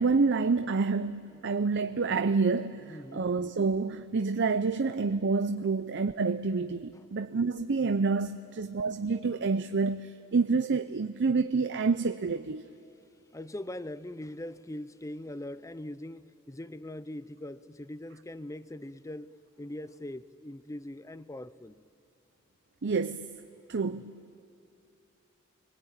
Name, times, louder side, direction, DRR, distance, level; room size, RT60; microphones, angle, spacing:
voice 1, 0.0-12.7 22.8-23.4 23.7-24.1, right 4 dB, 55° right, 0.6 m, -28 dB
voice 2, 2.9-3.3 6.9-7.1 13.3-21.8 24.0-24.1, left 1 dB, 15° left, 0.6 m, -41 dB
29.5 x 22.5 x 8.9 m
head